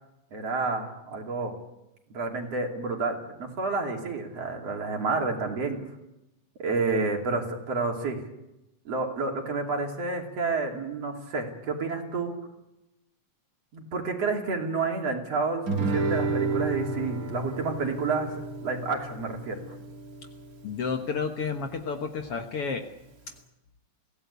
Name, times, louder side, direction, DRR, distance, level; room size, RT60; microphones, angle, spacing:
voice 1, 0.3-1.6 2.1-5.8 6.6-8.2 8.9-12.3 13.7-18.3 18.6-19.6, right 3 dB, 55° right, 2 dB, 3.9 m, -30 dB
Guitar, 15.7-20.7, right 3 dB, 35° right, 1.7 m, -31 dB
voice 2, 20.6-22.9, left 5 dB, 55° left, 5 dB, 2.0 m, -31 dB
24.0 x 17.0 x 8.3 m, 0.91 s
omnidirectional pair, 3.5 m